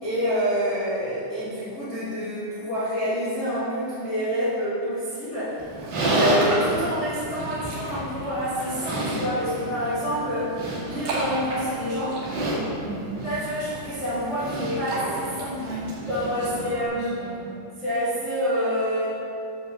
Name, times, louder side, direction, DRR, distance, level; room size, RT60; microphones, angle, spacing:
voice 1, 0.0-5.6 6.1-10.6 10.8-12.2 13.2-15.6 16.1-17.2 17.8-19.1, equal, 55° left, -12 dB, 1.3 m, -27 dB
Livestock farm animals working animals, 5.6-16.9, right 1 dB, 55° right, 3.3 m, -30 dB
voice 2, 12.8-13.1 15.6-15.8 16.3-16.7 16.9-17.6, right 5 dB, 80° right, -8 dB, 4.8 m, -37 dB
11.0 x 7.1 x 3.0 m, 2.6 s
omnidirectional pair, 5.9 m